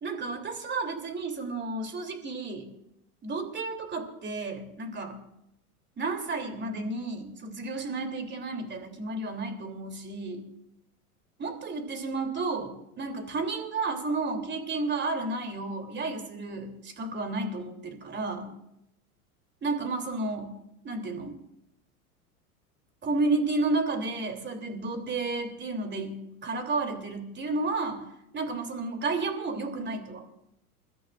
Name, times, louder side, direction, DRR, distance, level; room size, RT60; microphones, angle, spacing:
voice 1, 0.0-2.7 3.2-5.2 6.0-10.5 11.4-18.5 19.6-20.5 20.8-21.3 23.0-28.0 28.3-30.3, right 3 dB, 25° right, 4 dB, 3.2 m, -32 dB
28.5 x 14.0 x 2.5 m, 0.82 s
hypercardioid pair, 90°, 45 cm